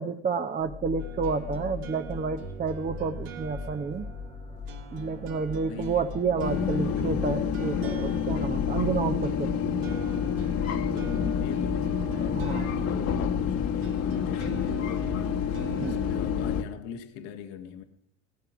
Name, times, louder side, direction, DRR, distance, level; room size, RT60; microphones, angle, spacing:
voice 1, 0.0-4.1 4.9-9.5 12.4-12.9 14.4-14.6 15.8-16.0, right 5 dB, 25° right, 6 dB, 1.0 m, -30 dB
sound 1, 0.6-14.3, left 6 dB, 15° left, 1.0 m, -40 dB
sound 2, 1.0-16.2, right 9 dB, 75° right, 1.8 m, -45 dB
voice 2, 5.7-7.5 10.6-17.8, left 7 dB, 75° left, 5 dB, 1.7 m, -42 dB
sound 3, 6.4-16.6, left 7 dB, 55° left, 1.6 m, -28 dB
17.5 x 12.5 x 6.2 m, 0.69 s
hypercardioid pair, 75°, 31 cm